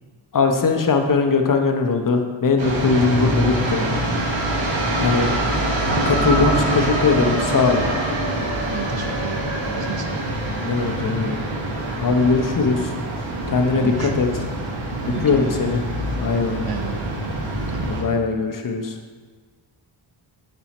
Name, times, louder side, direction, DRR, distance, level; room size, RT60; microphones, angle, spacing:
voice 1, 0.3-3.9 5.0-5.3 6.1-7.8 10.6-11.4 11.9-12.9 13.5-14.3 15.0-15.8 16.2-16.6 17.8-18.9, left 4 dB, 40° left, 5 dB, 0.9 m, -20 dB
sound 1, 2.6-18.0, right 1 dB, 65° right, 1.6 m, -24 dB
voice 2, 8.7-10.2 13.8-14.2 15.0-15.5 16.7-16.9 17.7-18.1, right 5 dB, 50° right, 4 dB, 0.9 m, -32 dB
6.9 x 5.5 x 3.0 m, 1.4 s
cardioid pair, 50°, 49 cm